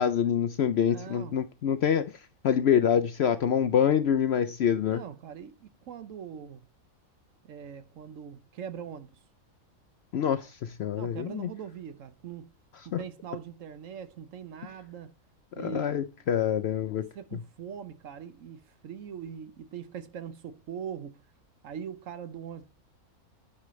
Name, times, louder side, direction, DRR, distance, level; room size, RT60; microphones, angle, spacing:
voice 1, 0.0-5.0 10.1-11.5 12.9-13.0 15.6-17.0 17.3-17.4, left 8 dB, 65° left, 0.6 m, -26 dB
voice 2, 0.8-1.4 4.9-6.7 7.4-9.2 10.9-12.5 12.8-15.1 15.6-16.0 16.7-16.8 17.1-21.2 21.6-22.6, right 8 dB, 65° right, 1.1 m, -41 dB
9.8 x 5.0 x 3.1 m
omnidirectional pair, 1.5 m